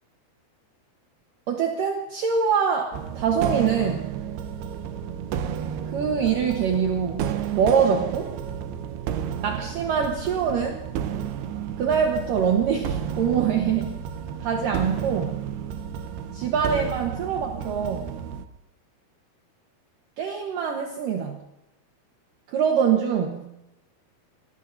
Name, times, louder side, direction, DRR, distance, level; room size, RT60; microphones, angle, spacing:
voice 1, 1.5-4.1 5.9-8.3 9.4-10.8 11.8-14.0 14.4-15.4 16.3-18.1 20.2-21.4 22.5-23.5, right 7 dB, 65° right, 2 dB, 2.6 m, -24 dB
Electronic Cinematic Music, 2.9-18.5, right 8 dB, 80° right, 2.9 m, -32 dB
26.5 x 20.5 x 2.7 m, 0.92 s
omnidirectional pair, 4.6 m